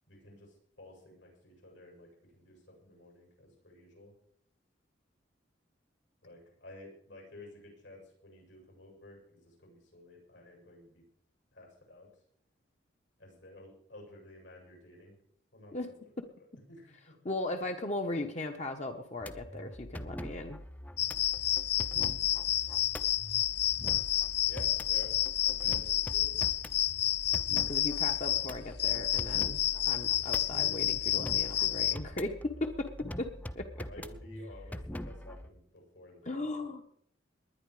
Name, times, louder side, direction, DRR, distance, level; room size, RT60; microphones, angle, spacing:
voice 1, 0.1-4.1 6.2-11.0 11.5-12.1 13.2-15.1 15.5-16.0 16.4-17.5 22.2-22.5 24.5-25.1 25.4-26.3 30.5-30.7 33.9-36.4, left 1 dB, 70° left, 0 dB, 7.9 m, -52 dB
voice 2, 17.2-20.6 27.7-29.6 29.9-33.9 36.2-36.8, left 2 dB, 40° left, 5 dB, 1.2 m, -37 dB
sound 1, 19.2-35.5, equal, 10° left, 0.6 m, -44 dB
sound 2, 21.0-32.0, left 13 dB, 55° left, 0.5 m, -30 dB
20.5 x 10.0 x 5.0 m, 0.66 s
head